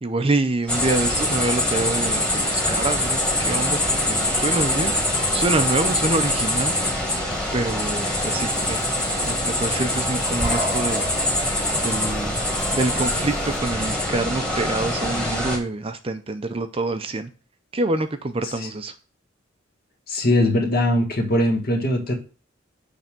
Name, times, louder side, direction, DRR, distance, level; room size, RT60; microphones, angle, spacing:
voice 1, 0.0-4.9 5.3-6.7 7.5-8.8 9.2-11.1 11.7-12.4 12.7-17.3 17.7-18.9, right 2 dB, 30° right, 9 dB, 0.5 m, -26 dB
sound 1, 0.7-15.6, left 1 dB, 5° left, 1.6 m, -24 dB
sound 2, 2.2-13.6, left 2 dB, 25° left, 2.4 m, -41 dB
voice 2, 20.1-22.1, left 1 dB, 50° left, 2 dB, 1.5 m, -20 dB
6.7 x 3.5 x 5.9 m, 0.35 s
head